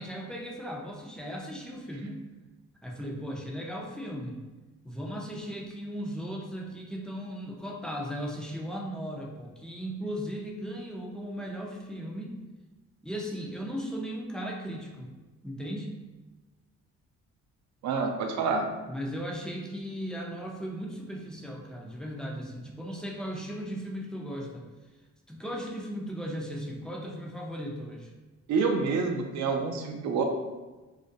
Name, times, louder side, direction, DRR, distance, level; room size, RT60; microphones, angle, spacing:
voice 1, 0.0-2.2 2.8-4.4 4.8-12.3 13.0-15.1 15.4-15.9 18.9-24.7 25.3-28.1, equal, 5° left, -1 dB, 0.3 m, -37 dB
voice 2, 17.8-18.7 28.5-30.2, right 4 dB, 65° right, 4 dB, 0.5 m, -27 dB
2.4 x 2.1 x 2.5 m, 1.2 s
cardioid pair, 90°, 30 cm